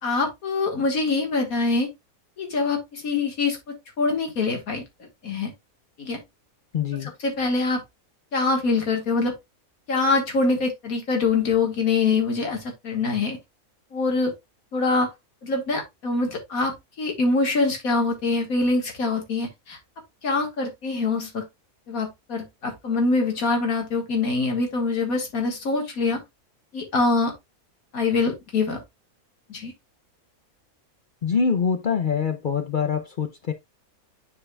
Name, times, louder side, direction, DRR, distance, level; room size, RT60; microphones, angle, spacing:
voice 1, 0.0-1.9 2.4-4.8 5.2-5.5 6.0-6.2 7.0-7.8 8.3-9.3 9.9-13.4 13.9-14.3 14.7-15.1 15.4-19.8 20.2-21.4 21.9-26.2 26.7-27.3 27.9-28.8 29.5-29.7, left 3 dB, 75° left, 2.0 m, -24 dB
voice 2, 6.7-7.1 31.2-33.5, left 6 dB, 55° left, 0.5 m, -24 dB
9.9 x 4.8 x 2.2 m
omnidirectional pair, 1.5 m